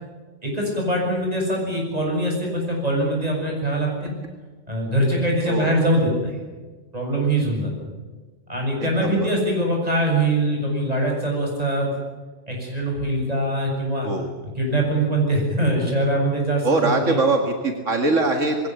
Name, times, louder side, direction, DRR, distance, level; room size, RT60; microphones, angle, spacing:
voice 1, 0.4-4.1 4.7-6.3 6.9-7.7 8.5-11.9 12.5-14.1 14.6-17.2, right 1 dB, 30° right, 0 dB, 7.8 m, -23 dB
voice 2, 8.8-9.3 14.0-14.3 16.6-18.6, right 3 dB, 80° right, 4 dB, 2.4 m, -22 dB
21.5 x 18.0 x 9.5 m, 1.3 s
omnidirectional pair, 1.3 m